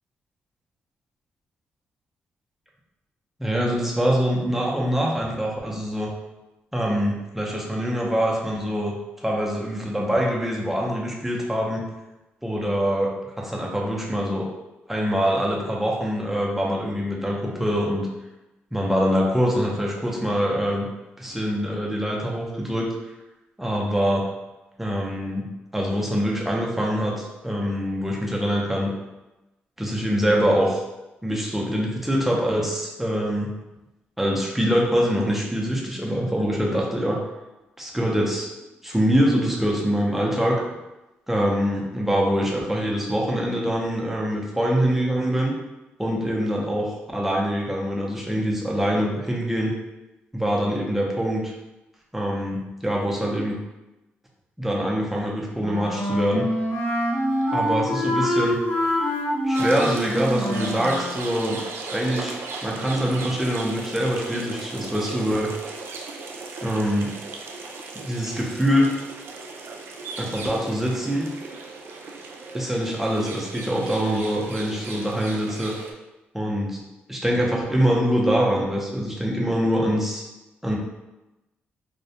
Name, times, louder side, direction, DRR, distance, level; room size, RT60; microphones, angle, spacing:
voice 1, 3.4-6.1 6.7-11.8 12.4-13.1 13.4-14.5 14.9-18.1 18.7-20.9 21.2-22.9 23.6-24.3 24.8-25.4 25.7-28.9 29.8-30.8 31.2-33.5 34.2-37.2 37.8-38.5 38.8-40.6 41.3-45.5 46.0-49.7 50.3-51.5 52.1-53.6 54.6-56.5 57.5-58.6 59.4-61.6 61.9-65.5 66.6-67.1 68.0-68.9 70.2-71.3 72.5-75.7 76.3-76.8 77.1-80.3 80.6-80.8, equal, 5° right, -3 dB, 0.6 m, -24 dB
Wind instrument woodwind instrument, 55.6-61.2, equal, 90° left, 0.9 m, -25 dB
sound 1, 59.5-75.9, right 3 dB, 70° right, 0.3 m, -37 dB
2.3 x 2.1 x 2.7 m, 1.0 s
cardioid pair, 80°, 4 cm